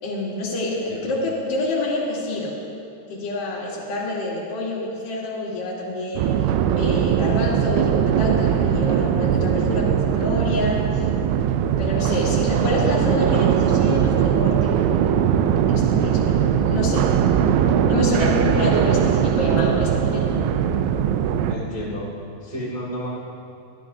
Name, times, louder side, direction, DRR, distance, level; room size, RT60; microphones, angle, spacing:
voice 1, 0.0-2.6 3.1-6.5 6.8-11.0 11.8-14.7 15.7-17.1 17.9-20.3, left 2 dB, 60° left, -7 dB, 1.5 m, -27 dB
sound 1, 6.2-21.6, right 8 dB, 90° right, 2.9 m, -20 dB
voice 2, 21.5-22.1 22.4-23.2, equal, 65° right, -8 dB, 0.4 m, -31 dB
15.0 x 11.5 x 2.7 m, 2.6 s
omnidirectional pair, 5.2 m